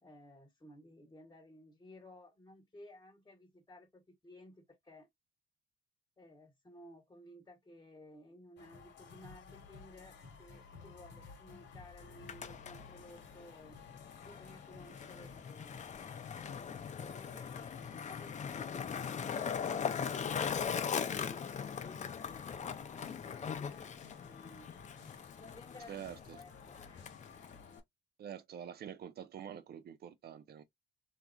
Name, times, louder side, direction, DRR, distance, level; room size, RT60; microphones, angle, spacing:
voice 1, 0.0-5.1 6.2-13.8 14.2-16.1 16.9-24.7 25.4-27.5, left 1 dB, 20° left, 1.0 m, -56 dB
sound 1, 8.6-27.8, left 6 dB, 65° left, 1.1 m, -56 dB
Skateboard, 12.1-27.8, left 7 dB, 35° left, 0.5 m, -40 dB
voice 2, 25.9-26.4 28.2-30.6, right 9 dB, 55° right, 0.4 m, -46 dB
3.0 x 2.4 x 2.2 m
cardioid pair, 90°, 20 cm